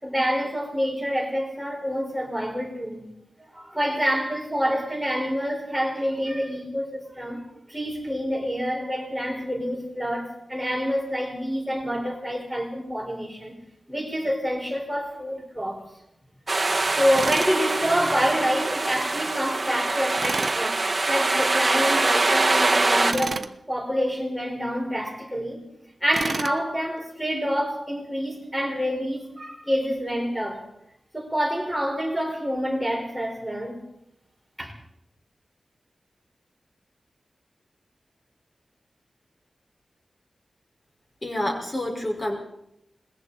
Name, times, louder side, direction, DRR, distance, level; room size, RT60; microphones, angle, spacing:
voice 1, 0.0-3.1 3.5-13.5 13.9-15.8 16.9-23.4 23.7-25.6 26.0-30.6 31.1-33.8 34.6-34.7, equal, 5° right, 5.3 m, -27 dB
sound 1, 16.5-23.1, right 2 dB, 35° right, 1.4 m, -24 dB
Tools, 17.2-17.6 20.2-20.6 23.1-23.5 26.1-26.6, right 4 dB, 55° right, 1.1 m, -30 dB
voice 2, 41.2-42.4, left 1 dB, 25° left, 5.5 m, -28 dB
27.0 x 22.0 x 4.4 m
wide cardioid pair, 110°, 0 cm